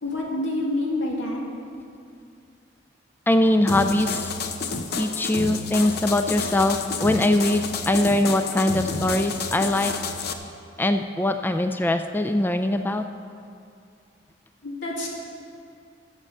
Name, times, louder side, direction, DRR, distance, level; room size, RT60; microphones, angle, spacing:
voice 1, 0.0-1.4 14.6-15.1, left 1 dB, 90° left, -2 dB, 2.2 m, -27 dB
voice 2, 3.3-4.3 5.0-9.9 10.8-13.0, left 1 dB, 10° left, 8 dB, 0.3 m, -22 dB
sound 1, 3.7-10.3, left 4 dB, 55° left, 0.7 m, -30 dB
14.0 x 7.4 x 5.5 m, 2.4 s
head